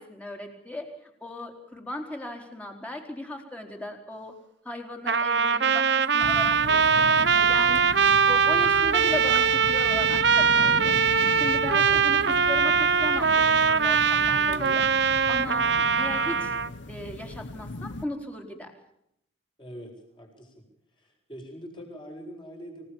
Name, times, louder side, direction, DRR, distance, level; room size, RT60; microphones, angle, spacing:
voice 1, 0.0-4.3 4.6-11.0 11.3-14.9 15.3-15.6 16.0-16.5 16.9-18.7, left 1 dB, 5° left, 3 dB, 4.2 m, -37 dB
Trumpet, 5.1-16.7, right 6 dB, 55° right, 1.1 m, -22 dB
sound 1, 6.2-18.0, left 2 dB, 65° left, 1.1 m, -38 dB
voice 2, 15.5-15.8 19.6-20.6 20.9-22.9, equal, 25° left, 1 dB, 7.9 m, -43 dB
29.5 x 18.0 x 7.3 m, 0.76 s
head